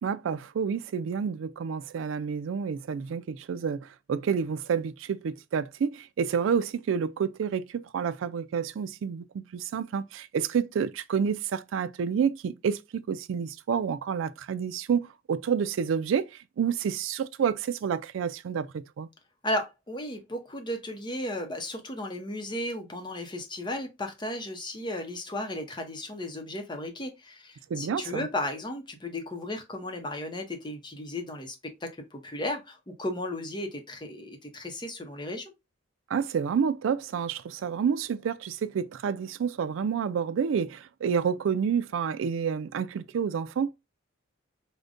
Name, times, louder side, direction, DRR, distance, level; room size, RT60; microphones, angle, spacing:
voice 1, 0.0-18.7 19.0-19.1 27.7-28.3 36.1-43.7, right 7 dB, 80° right, 0.3 m, -29 dB
voice 2, 19.4-31.5 31.8-35.5, left 1 dB, 25° left, 0.7 m, -35 dB
4.9 x 2.2 x 2.5 m
head